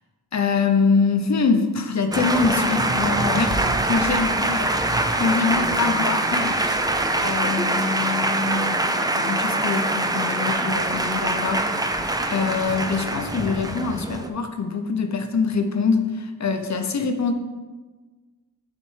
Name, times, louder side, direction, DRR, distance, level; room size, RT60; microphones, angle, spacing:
voice 1, 0.3-17.3, left 4 dB, 45° left, 6 dB, 0.7 m, -24 dB
Male speech man speaking, 2.1-14.3, right 2 dB, 10° right, 0.4 m, -23 dB
10.0 x 4.1 x 3.2 m, 1.3 s
wide cardioid pair, 105°, 39 cm